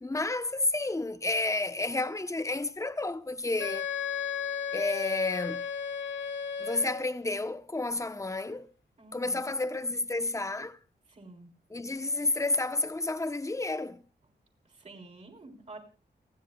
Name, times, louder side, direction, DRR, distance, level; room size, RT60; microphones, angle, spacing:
voice 1, 0.0-3.9 4.7-5.6 6.6-8.7 9.1-10.8 11.7-14.0, left 2 dB, 15° left, 1.0 m, -31 dB
Wind instrument woodwind instrument, 3.6-7.2, left 7 dB, 85° left, 1.4 m, -34 dB
voice 2, 9.0-9.5 11.1-11.5 14.8-15.8, right 3 dB, 40° right, 4.1 m, -49 dB
30.0 x 10.0 x 2.4 m
wide cardioid pair, 155°, 18 cm